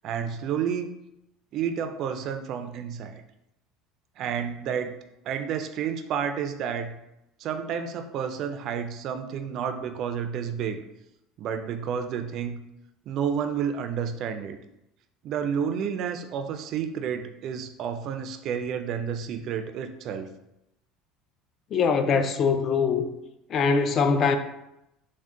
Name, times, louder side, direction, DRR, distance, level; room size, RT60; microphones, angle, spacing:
voice 1, 0.0-0.9 1.5-3.2 4.2-4.9 5.3-6.9 7.4-10.8 11.4-12.6 13.1-14.6 15.2-20.3, right 7 dB, 50° right, 0.3 m, -30 dB
voice 2, 21.7-23.1 23.5-24.4, left 5 dB, 40° left, 0.3 m, -22 dB
3.7 x 2.1 x 3.5 m
cardioid pair, 135°, 0 cm